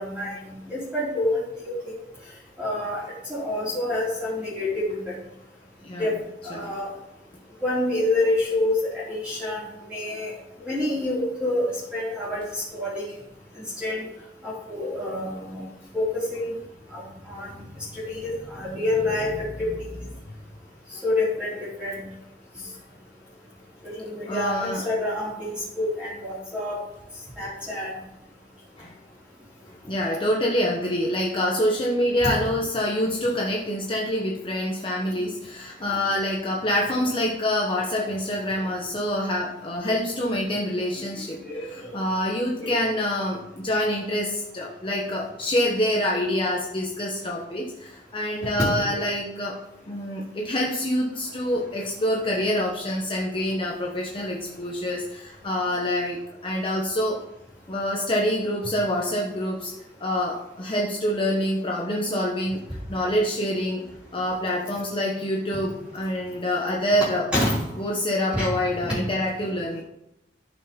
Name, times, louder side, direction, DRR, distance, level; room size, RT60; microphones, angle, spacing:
voice 1, 0.0-1.7 2.6-3.0 3.3-5.1 6.0-6.2 6.4-6.9 7.6-9.6 9.9-10.3 10.6-11.6 11.9-13.0 13.8-14.1 14.4-15.6 15.9-16.5 16.9-17.0 17.3-17.5 17.9-19.3 19.6-19.7 21.0-22.0 23.8-26.8 27.4-28.0 32.2-32.3 41.4-41.7 42.6-42.7 48.4-49.0 67.3-67.6 68.3-68.5, left 1 dB, 5° right, -9 dB, 3.7 m, -27 dB
voice 2, 24.2-24.9 28.8-28.9 29.7-41.4 41.7-57.2 57.7-59.7 60.0-62.6 62.9-63.9 64.1-67.3 67.8-69.8, left 1 dB, 30° left, -2 dB, 1.2 m, -26 dB
13.5 x 5.8 x 5.3 m, 0.85 s
head